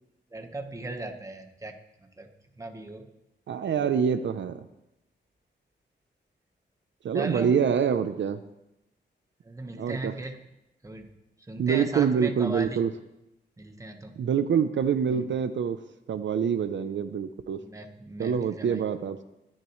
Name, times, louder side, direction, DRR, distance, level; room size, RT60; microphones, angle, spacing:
voice 1, 0.3-1.8 2.2-2.3 2.6-3.1 7.1-7.6 9.4-10.4 10.8-11.1 11.5-12.8 13.6-14.2 15.1-15.2 17.5-18.9, right 2 dB, 15° right, 5 dB, 1.3 m, -37 dB
voice 2, 3.5-4.7 7.0-8.4 9.8-10.1 11.6-12.9 14.2-15.8 16.1-17.6 18.2-19.2, right 7 dB, 75° right, 10 dB, 0.6 m, -26 dB
23.5 x 10.0 x 3.2 m, 0.89 s
wide cardioid pair, 135°, 19 cm